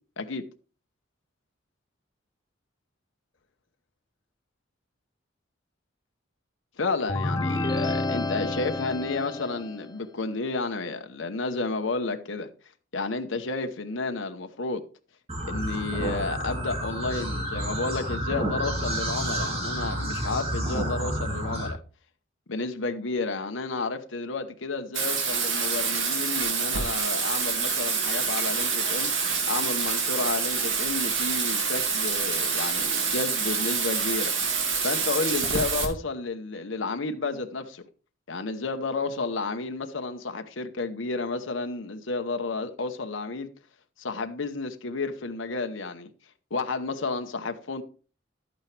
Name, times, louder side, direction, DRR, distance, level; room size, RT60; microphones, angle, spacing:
voice 1, 6.8-12.5 12.9-14.8 15.4-21.8 22.5-29.1 29.5-34.3 34.8-37.8 38.3-43.5 44.0-46.1 46.5-47.8, left 3 dB, 80° left, 1.0 m, -31 dB
sound 1, 7.1-9.9, left 2 dB, 20° left, 0.6 m, -29 dB
sound 2, 15.3-21.7, right 1 dB, 30° right, 2.8 m, -30 dB
Bathtub (filling or washing), 24.9-35.8, right 5 dB, 70° right, 2.4 m, -27 dB
12.0 x 8.8 x 3.4 m
head